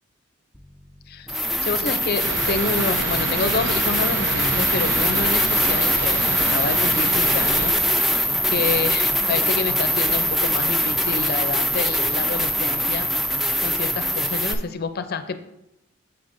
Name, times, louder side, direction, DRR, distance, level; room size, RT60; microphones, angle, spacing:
sound 1, 0.6-0.7 1.3-14.5, equal, ahead, 0.5 m, -22 dB
voice 1, 1.1-13.1 13.4-15.4, left 4 dB, 50° left, 10 dB, 0.5 m, -28 dB
sound 2, 2.2-7.7, right 3 dB, 70° right, 0.8 m, -28 dB
7.0 x 6.7 x 2.6 m, 0.86 s
head